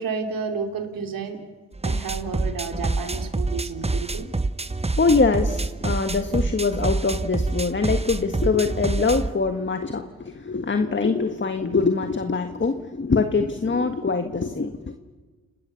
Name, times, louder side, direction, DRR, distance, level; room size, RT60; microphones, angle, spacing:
voice 1, 0.0-1.4 1.8-4.3, right 5 dB, 70° right, 4 dB, 3.2 m, -31 dB
sound 1, 1.7-9.3, right 2 dB, 20° right, 1.2 m, -27 dB
voice 2, 5.0-14.9, left 4 dB, 35° left, 7 dB, 1.6 m, -23 dB
30.0 x 19.5 x 7.1 m, 1.4 s
supercardioid pair, 45°, 35 cm